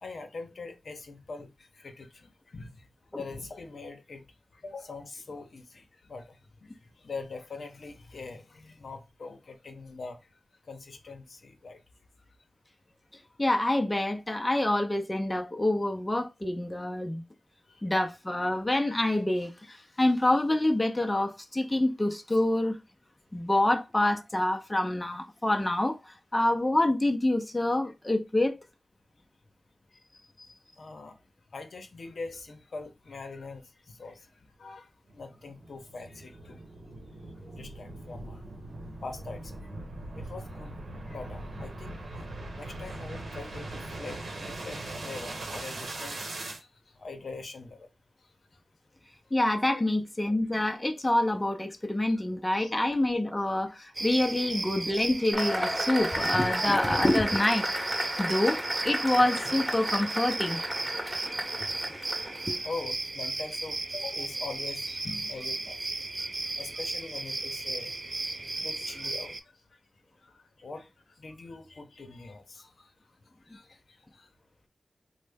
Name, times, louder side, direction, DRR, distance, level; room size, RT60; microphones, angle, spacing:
voice 1, 0.0-2.8 3.1-4.2 4.6-6.4 6.6-6.7 7.0-10.2 10.7-11.8 17.7-17.8 22.3-22.4 30.8-31.2 31.5-34.3 34.6-34.9 35.1-36.6 37.5-38.4 39.0-39.6 40.2-40.8 41.1-42.2 42.6-46.7 47.0-47.9 49.7-49.8 52.1-52.2 52.5-52.7 53.8-53.9 58.2-58.3 61.1-61.9 62.3-66.3 66.6-68.3 68.5-69.4 70.2-70.9 71.2-72.9 73.5-73.8 74.1-74.3, left 3 dB, 70° left, 0.7 m, -43 dB
voice 2, 13.4-17.2 17.8-22.8 23.3-28.6 49.3-57.7 58.2-60.6 61.9-62.0 62.5-62.6, left 1 dB, 20° left, 0.5 m, -27 dB
sound 1, 35.1-46.6, right 2 dB, 80° right, 0.9 m, -40 dB
sound 2, 54.0-69.4, right 2 dB, 45° right, 0.5 m, -35 dB
Cheering / Applause / Crowd, 55.3-62.6, equal, 15° right, 1.0 m, -33 dB
3.1 x 2.1 x 3.4 m
cardioid pair, 60°, 0 cm